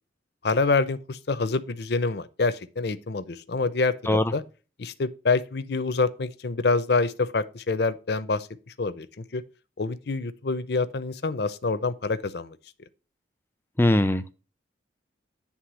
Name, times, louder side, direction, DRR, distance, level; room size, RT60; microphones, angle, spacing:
voice 1, 0.4-4.4 4.8-8.5 8.8-9.4 9.8-12.6, left 3 dB, 55° left, 0.6 m, -26 dB
voice 2, 13.8-14.3, left 1 dB, 10° left, 0.5 m, -21 dB
9.6 x 3.6 x 6.1 m
head